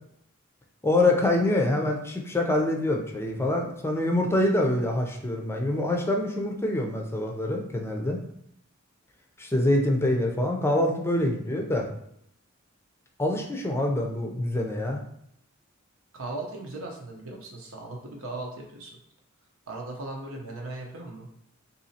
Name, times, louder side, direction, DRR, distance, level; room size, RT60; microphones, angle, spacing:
voice 1, 0.8-8.2 9.4-11.9 13.2-15.0, left 1 dB, 10° left, 2 dB, 0.5 m, -25 dB
voice 2, 16.1-19.0 19.7-21.3, right 2 dB, 90° right, 0 dB, 0.9 m, -38 dB
4.0 x 2.7 x 2.8 m, 0.73 s
head